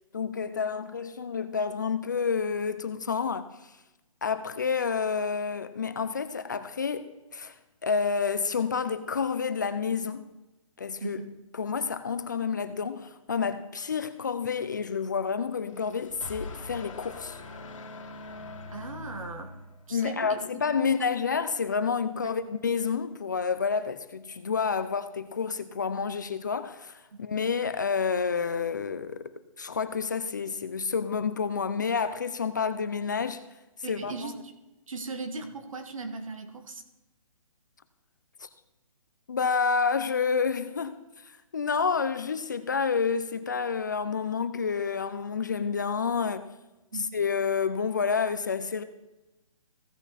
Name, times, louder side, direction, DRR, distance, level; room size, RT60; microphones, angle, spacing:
voice 1, 0.1-3.5 4.2-7.1 7.3-7.5 7.8-10.3 10.8-11.2 11.5-17.4 19.9-33.4 33.9-34.1 38.4-38.5 39.3-41.0 41.2-46.5 47.1-48.8, left 5 dB, 35° left, 0.4 m, -29 dB
voice 2, 11.0-11.3 18.7-19.6 19.9-21.1 22.2-22.3 27.1-27.2 33.8-34.5 34.9-36.8 46.9-47.2, right 3 dB, 70° right, 1.7 m, -38 dB
sound 1, 15.5-20.1, left 3 dB, 60° left, 1.8 m, -43 dB
16.0 x 5.7 x 4.1 m
hypercardioid pair, 175°, 18 cm